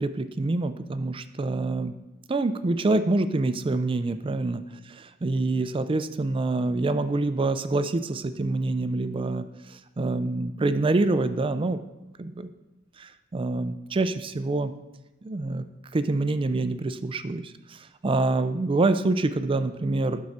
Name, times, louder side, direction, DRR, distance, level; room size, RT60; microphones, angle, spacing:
voice 1, 0.0-1.9 2.3-4.6 5.2-9.5 10.0-11.8 12.2-12.5 13.0-14.7 15.2-15.6 15.9-17.8 18.0-20.2, right 2 dB, 25° right, 11 dB, 0.4 m, -26 dB
11.5 x 4.7 x 4.2 m, 1.0 s
head